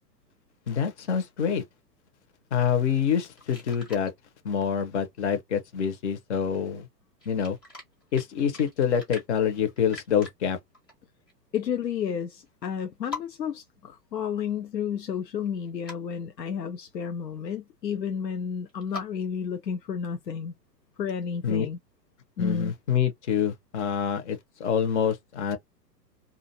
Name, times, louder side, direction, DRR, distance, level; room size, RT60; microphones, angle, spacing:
voice 1, 0.7-1.6 2.5-4.1 4.4-6.9 7.3-7.6 8.1-10.6 21.4-21.7 22.4-25.6, left 7 dB, 45° left, 0.9 m, -26 dB
sound 1, 3.2-4.1 7.2-10.3 10.7-11.0 11.3-11.4 12.5-12.6 12.8-12.9 13.1-13.2 15.5-16.0 18.7-19.0, left 3 dB, 15° left, 0.4 m, -42 dB
voice 2, 11.5-20.5 21.0-21.8 22.4-22.7, left 7 dB, 80° left, 0.6 m, -31 dB
2.6 x 2.5 x 2.6 m
figure-of-eight pair, 110°, 50 cm